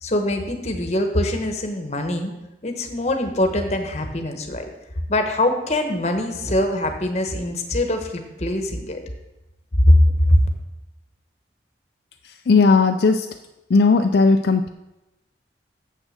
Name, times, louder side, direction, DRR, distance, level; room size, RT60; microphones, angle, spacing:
voice 1, 0.0-2.3 2.6-4.6 5.1-9.0 9.9-10.4, left 1 dB, 40° left, 5 dB, 1.1 m, -22 dB
voice 2, 12.2-13.4 13.7-14.7, left 4 dB, 70° left, 5 dB, 0.4 m, -17 dB
7.5 x 6.2 x 6.4 m, 0.97 s
head